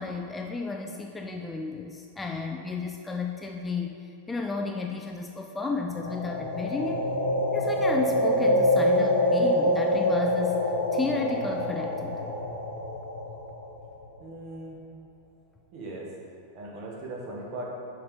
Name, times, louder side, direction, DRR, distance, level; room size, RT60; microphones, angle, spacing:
voice 1, 0.0-7.1 7.5-12.3, left 4 dB, 10° left, 3 dB, 0.4 m, -33 dB
sound 1, 5.9-13.9, left 1 dB, 75° left, 1.0 m, -26 dB
voice 2, 14.2-14.8 15.7-16.1 16.5-17.6, right 2 dB, 40° right, -3 dB, 1.6 m, -38 dB
6.8 x 5.2 x 5.1 m, 2.6 s
figure-of-eight pair, 90°, 0 cm